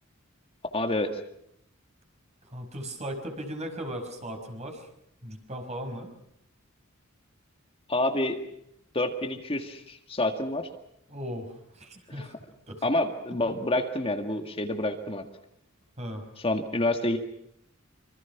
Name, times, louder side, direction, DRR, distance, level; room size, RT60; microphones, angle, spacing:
voice 1, 0.7-1.2 7.9-8.4 8.9-10.7 12.1-12.3 12.8-15.2 16.4-17.2, left 1 dB, 30° left, 5 dB, 1.9 m, -28 dB
voice 2, 2.5-4.9 5.2-6.1 11.1-12.3 12.7-12.8 16.0-16.2, equal, 35° right, 4 dB, 5.4 m, -37 dB
26.5 x 26.0 x 5.9 m, 0.75 s
head